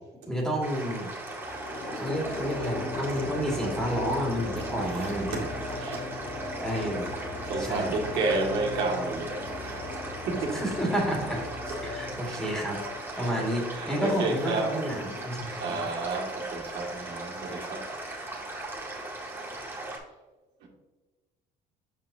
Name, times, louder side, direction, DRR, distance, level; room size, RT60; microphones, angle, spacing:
voice 1, 0.3-1.1 2.0-5.4 6.6-7.1 7.6-8.0 10.5-12.8 13.2-15.9, equal, 5° left, -2 dB, 2.1 m, -30 dB
sound 1, 0.6-20.0, right 2 dB, 15° right, 2.0 m, -38 dB
sound 2, 1.4-14.0, left 2 dB, 35° left, 1.1 m, -38 dB
voice 2, 4.9-5.5 5.8-6.0 7.5-10.6 12.3-12.4 13.2-13.3 13.7-14.8 15.4-17.8 20.6-20.7, right 3 dB, 80° right, -4 dB, 2.0 m, -31 dB
7.8 x 5.3 x 2.7 m, 1.2 s
cardioid pair, 110°, 17 cm